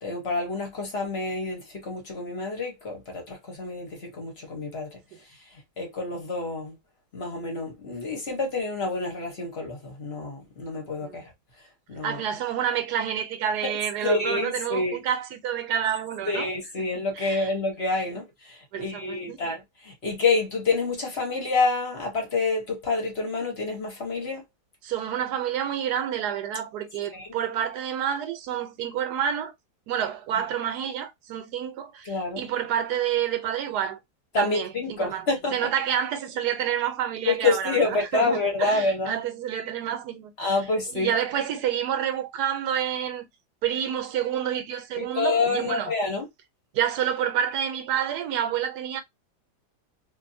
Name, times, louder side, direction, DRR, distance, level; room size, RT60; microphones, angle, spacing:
voice 1, 0.0-5.0 5.8-6.7 7.1-11.3 11.9-12.2 13.6-13.7 14.0-15.0 16.3-24.4 27.1-27.3 32.0-32.4 34.3-35.6 37.2-39.1 40.4-41.1 45.0-46.3, left 3 dB, 45° left, 1.1 m, -28 dB
voice 2, 12.0-16.5 17.1-17.5 18.7-19.4 24.8-29.5 29.9-34.0 34.4-40.6 40.9-43.3 43.6-45.9 46.7-49.0, right 9 dB, 80° right, 1.2 m, -28 dB
2.7 x 2.6 x 2.6 m
omnidirectional pair, 1.7 m